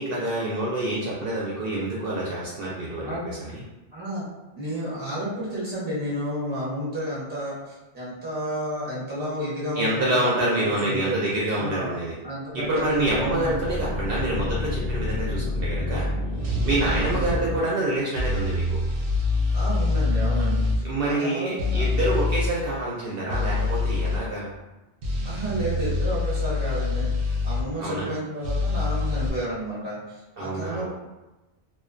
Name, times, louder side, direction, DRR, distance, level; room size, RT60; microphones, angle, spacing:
voice 1, 0.0-3.6 9.7-12.2 12.5-16.1 16.6-18.6 20.8-24.5 27.8-28.1 30.4-30.9, right 1 dB, 60° right, -6 dB, 0.6 m, -27 dB
voice 2, 2.9-3.3 3.9-4.2 4.5-10.3 10.7-11.2 11.6-12.0 12.2-13.6 14.2-14.5 16.8-17.3 19.5-21.9 25.2-27.1 27.4-30.0 30.4-30.9, right 1 dB, 10° right, -7 dB, 0.5 m, -31 dB
sound 1, 12.9-17.6, left 1 dB, 40° left, 0.7 m, -29 dB
sound 2, 16.4-17.4 18.2-20.8 21.6-22.5 23.3-24.2 25.0-27.6 28.4-29.3, left 3 dB, 85° right, 0.9 m, -25 dB
2.4 x 2.2 x 2.4 m, 1.1 s
omnidirectional pair, 1.2 m